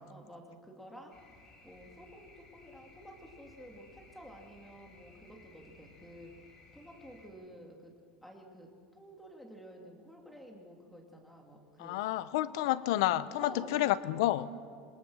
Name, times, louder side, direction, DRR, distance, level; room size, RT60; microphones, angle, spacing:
voice 1, 0.1-1.2 1.6-6.4 6.7-7.9 8.2-12.0 13.4-13.8, equal, ahead, 1 dB, 2.6 m, -51 dB
sound 1, 1.1-7.3, left 3 dB, 30° left, 4.4 m, -59 dB
voice 2, 11.8-14.5, left 14 dB, 75° left, 15 dB, 0.8 m, -30 dB
27.0 x 20.5 x 6.4 m, 2.3 s
cardioid pair, 160°, 2 cm